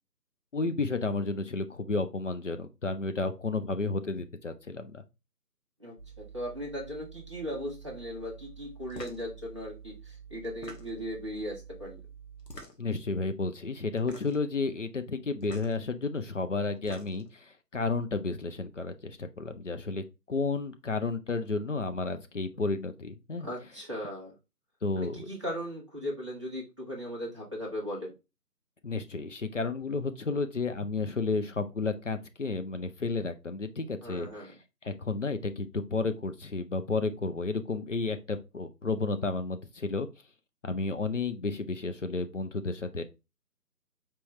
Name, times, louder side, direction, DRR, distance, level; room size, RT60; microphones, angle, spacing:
voice 1, 0.5-5.0 12.8-23.5 24.8-25.3 28.8-34.5 34.8-40.1 40.6-43.0, left 3 dB, 50° left, 0.6 m, -32 dB
voice 2, 5.8-12.0 23.4-24.3 25.0-28.1 34.0-34.5, equal, 20° right, 0.8 m, -38 dB
sound 1, 6.0-12.6, right 8 dB, 15° left, 1.2 m, -49 dB
sound 2, 8.9-9.3 10.4-11.1 12.4-13.0 14.0-14.5 15.4-15.7 16.6-17.3, left 2 dB, 80° left, 1.4 m, -46 dB
4.5 x 3.6 x 3.0 m
figure-of-eight pair, 160°, 49 cm